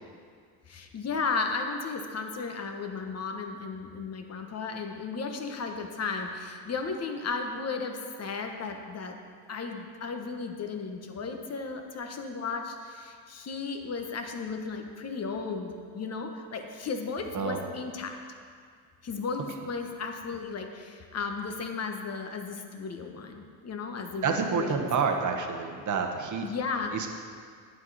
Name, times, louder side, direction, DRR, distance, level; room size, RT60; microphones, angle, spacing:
voice 1, 0.7-9.2 9.5-18.2 19.0-24.9 26.4-26.9, left 4 dB, 35° left, 4 dB, 1.1 m, -35 dB
voice 2, 24.2-26.5 26.9-27.1, right 5 dB, 40° right, 3 dB, 1.3 m, -28 dB
9.5 x 7.9 x 4.1 m, 2.1 s
supercardioid pair, 80°, 45 cm